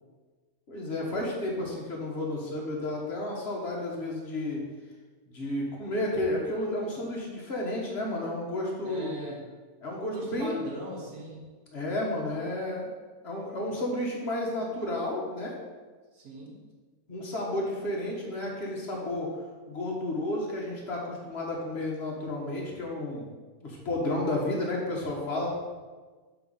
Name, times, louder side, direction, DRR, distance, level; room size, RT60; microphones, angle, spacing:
voice 1, 0.7-4.6 5.3-9.1 9.8-10.7 11.7-12.9 13.2-15.6 17.1-19.3 19.7-23.3 23.6-25.5, left 1 dB, 45° left, -2 dB, 1.6 m, -32 dB
voice 2, 8.8-9.4 10.0-11.5 16.1-16.6, right 1 dB, 80° right, -3 dB, 1.5 m, -40 dB
6.9 x 3.9 x 5.4 m, 1.4 s
omnidirectional pair, 1.6 m